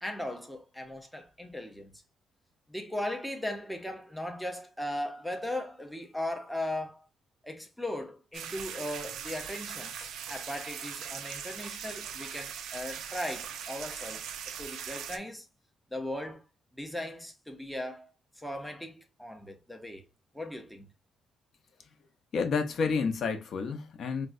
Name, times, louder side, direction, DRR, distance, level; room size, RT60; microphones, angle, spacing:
voice 1, 0.0-2.0 2.7-7.1 7.4-14.2 14.6-15.5 15.9-16.4 16.7-18.1 18.4-20.0 20.3-20.9, left 1 dB, ahead, 0.5 m, -38 dB
sound 1, 8.3-15.2, right 8 dB, 80° right, 0.4 m, -40 dB
voice 2, 22.3-24.3, left 5 dB, 50° left, 0.5 m, -30 dB
4.3 x 2.1 x 2.3 m
cardioid pair, 145°, 0 cm